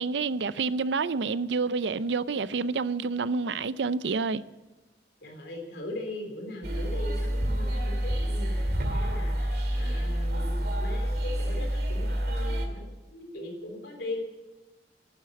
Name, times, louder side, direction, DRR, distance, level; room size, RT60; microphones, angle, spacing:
voice 1, 0.0-4.4, right 4 dB, 80° right, 0.5 m, -28 dB
voice 2, 5.2-14.2, left 1 dB, 70° left, 3.6 m, -40 dB
sound 1, 6.6-12.7, equal, 60° right, 2.2 m, -28 dB
11.5 x 9.9 x 9.2 m
head